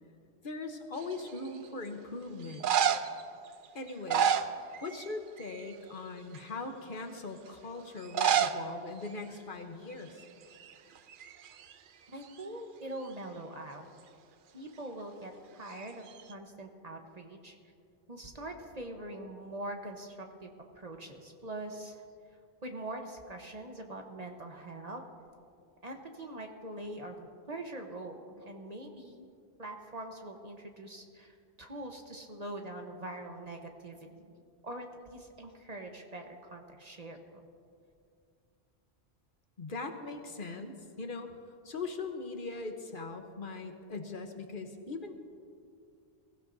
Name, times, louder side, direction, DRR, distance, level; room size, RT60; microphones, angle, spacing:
voice 1, 0.4-2.7 3.7-4.3 4.8-10.2 34.2-34.3 39.6-41.4 41.6-45.2, left 3 dB, 55° left, 5 dB, 1.1 m, -40 dB
sound 1, 1.0-1.5 2.4-3.2 3.9-5.1 5.4-5.8 6.3-6.4 8.0-8.6 8.9-9.0 9.2-9.3 10.0-10.2 10.5-11.7 15.7-16.3, right 8 dB, 60° right, 0.7 m, -30 dB
voice 2, 12.1-13.8 14.5-17.5 18.1-22.0 22.6-25.0 25.8-29.3 29.6-34.3 34.6-37.4, right 1 dB, 40° right, 3 dB, 1.1 m, -43 dB
22.5 x 16.0 x 2.6 m, 2.4 s
omnidirectional pair, 1.1 m